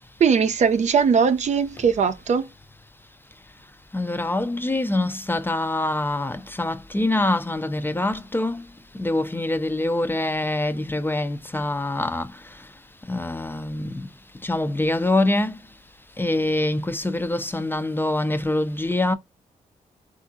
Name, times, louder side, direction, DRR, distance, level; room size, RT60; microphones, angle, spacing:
voice 1, 0.2-2.5, right 6 dB, 55° right, 0.5 m, -20 dB
voice 2, 3.9-8.6 9.0-12.3 13.1-14.1 14.4-15.6 16.2-19.1, left 2 dB, 15° left, 0.4 m, -24 dB
3.5 x 2.4 x 2.5 m
cardioid pair, 70°, 14 cm